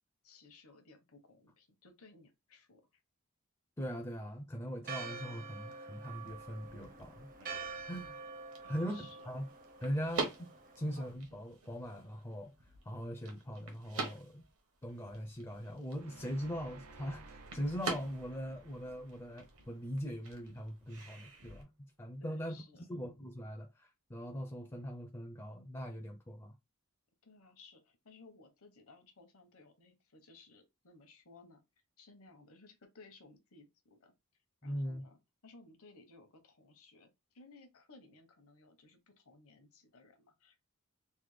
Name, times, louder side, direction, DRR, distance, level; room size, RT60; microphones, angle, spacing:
voice 1, 0.2-2.9 8.6-9.3 22.2-22.9 27.2-31.6 32.0-34.1 34.6-40.6, left 3 dB, 70° left, 0.8 m, -59 dB
voice 2, 3.8-7.3 7.7-8.2 8.7-9.4 9.8-10.5 10.8-12.5 12.9-14.4 14.8-21.7 22.0-22.6 22.9-26.5 34.6-35.0, equal, 15° left, 0.4 m, -41 dB
Church bell, 4.8-11.1, right 4 dB, 40° right, 0.6 m, -47 dB
sound 1, 6.1-21.6, right 4 dB, 70° right, 1.0 m, -46 dB
sound 2, 15.9-21.0, right 3 dB, 85° right, 0.5 m, -57 dB
3.2 x 2.1 x 3.2 m
head